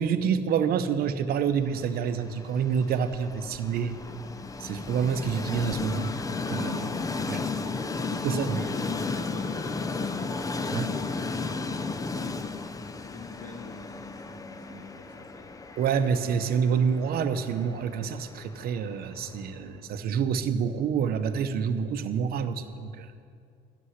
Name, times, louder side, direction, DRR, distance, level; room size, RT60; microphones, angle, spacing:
voice 1, 0.0-4.0 4.6-6.1 6.4-7.0 7.3-7.4 8.2-8.6 10.7-10.9 15.8-23.1, right 7 dB, 65° right, 9 dB, 0.8 m, -27 dB
Train, 1.6-19.6, left 4 dB, 20° left, 0.6 m, -34 dB
voice 2, 6.7-7.5 8.0-12.5 12.9-15.5, left 2 dB, 55° left, -4 dB, 2.8 m, -44 dB
11.0 x 6.9 x 9.7 m, 2.4 s
cardioid pair, 110°, 17 cm